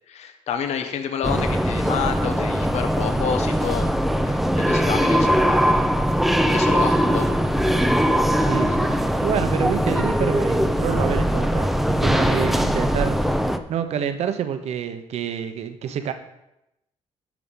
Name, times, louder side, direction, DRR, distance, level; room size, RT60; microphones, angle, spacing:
voice 1, 0.1-3.9 4.2-5.5 6.5-7.4, left 7 dB, 70° left, 1.4 m, -29 dB
sound 1, 1.2-13.6, equal, ahead, 0.7 m, -21 dB
voice 2, 8.1-13.4 13.7-16.1, right 8 dB, 70° right, 1.0 m, -28 dB
12.0 x 5.0 x 5.7 m
cardioid pair, 110°, 12 cm